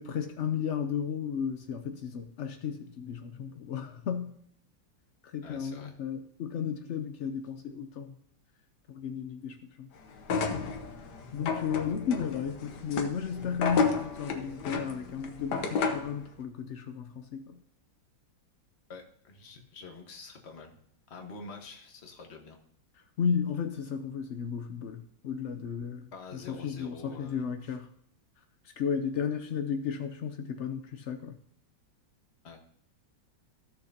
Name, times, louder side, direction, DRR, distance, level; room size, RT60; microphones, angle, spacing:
voice 1, 0.0-4.3 5.2-8.2 8.9-9.9 11.3-17.6 23.2-26.1 26.5-27.9 28.8-31.4, left 7 dB, 85° left, 7 dB, 0.6 m, -34 dB
voice 2, 5.4-6.0 18.9-20.8 21.1-22.6 26.1-27.8 32.4-32.6, left 4 dB, 40° left, 3 dB, 1.5 m, -47 dB
sound 1, 10.2-16.2, left 5 dB, 65° left, 1.6 m, -32 dB
15.0 x 6.6 x 2.8 m, 0.68 s
omnidirectional pair, 2.0 m